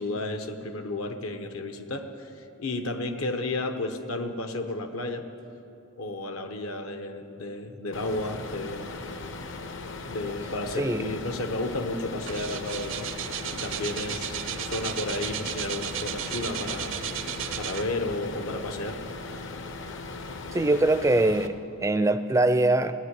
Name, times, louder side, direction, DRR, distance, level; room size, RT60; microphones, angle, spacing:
voice 1, 0.0-5.2 6.0-8.9 10.0-13.1 13.5-14.4 14.6-16.9 17.6-19.0 19.3-19.5, left 2 dB, 75° left, 7 dB, 1.1 m, -32 dB
sound 1, 7.9-21.5, left 3 dB, 55° left, 0.8 m, -38 dB
sound 2, 11.6-11.7 11.9-18.2 18.7-18.8, right 10 dB, 60° right, 0.6 m, -34 dB
voice 2, 20.5-22.9, right 2 dB, 15° right, 11 dB, 0.4 m, -23 dB
16.5 x 10.0 x 8.2 m, 2.8 s
head